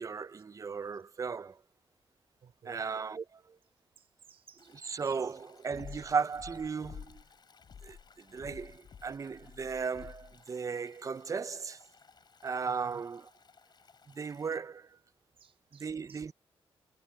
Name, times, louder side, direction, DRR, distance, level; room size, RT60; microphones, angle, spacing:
voice 1, 0.0-1.6 2.7-3.4 4.7-7.2 7.8-8.0 8.3-11.8 12.4-13.3 14.2-14.9 15.8-16.3, right 5 dB, 35° right, 0.5 m, -36 dB
voice 2, 2.4-2.8 4.0-5.1 5.9-6.0 12.7-13.0 15.4-16.2, right 7 dB, 70° right, 5.1 m, -59 dB
Stream, 4.6-14.6, left 5 dB, 45° left, 7.5 m, -63 dB
sound 1, 5.7-7.3 7.6-10.4, left 7 dB, 65° left, 4.7 m, -50 dB
wide cardioid pair, 115°, 10 cm